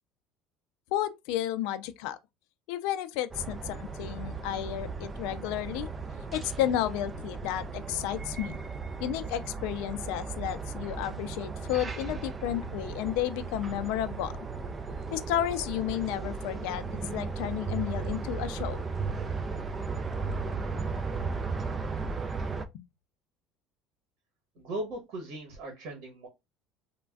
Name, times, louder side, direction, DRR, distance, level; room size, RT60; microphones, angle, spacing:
voice 1, 0.9-2.2 2.7-5.9 6.3-8.5 9.0-14.3 15.1-16.8 17.1-18.8, left 12 dB, 75° left, 0.4 m, -32 dB
sound 1, 3.3-22.7, right 4 dB, 25° right, 0.3 m, -36 dB
voice 2, 24.5-26.3, right 1 dB, 70° right, 1.0 m, -38 dB
3.3 x 2.1 x 2.2 m
cardioid pair, 125°, 0 cm